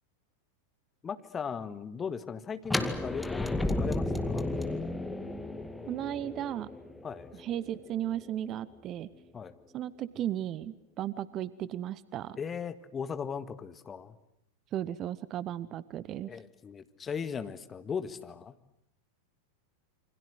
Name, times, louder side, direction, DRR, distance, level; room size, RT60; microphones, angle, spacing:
voice 1, 1.0-4.5 7.0-7.3 9.3-9.5 12.4-14.2 16.3-18.5, left 6 dB, 20° left, 11 dB, 1.8 m, -38 dB
sound 1, 2.6-8.5, left 2 dB, 5° left, 2.3 m, -33 dB
voice 2, 5.9-6.7 7.4-9.1 9.7-12.4 14.7-16.3, right 11 dB, 35° right, 19 dB, 1.0 m, -35 dB
28.0 x 25.5 x 8.0 m, 0.79 s
figure-of-eight pair, 90°, 0 cm